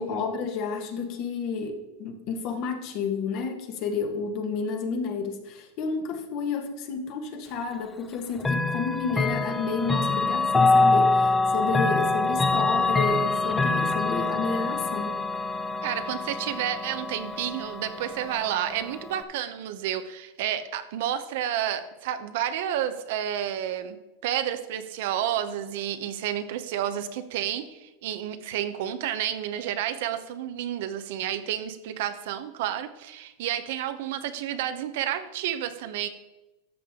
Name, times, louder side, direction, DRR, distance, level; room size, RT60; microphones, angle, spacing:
voice 1, 0.0-15.2, left 5 dB, 50° left, 5 dB, 1.6 m, -31 dB
Chime / Clock, 8.4-19.2, left 3 dB, 10° left, 0.7 m, -25 dB
voice 2, 15.8-24.0 24.2-36.1, right 11 dB, 70° right, 10 dB, 0.9 m, -30 dB
13.0 x 7.0 x 3.8 m, 1.0 s
supercardioid pair, 135°, 0 cm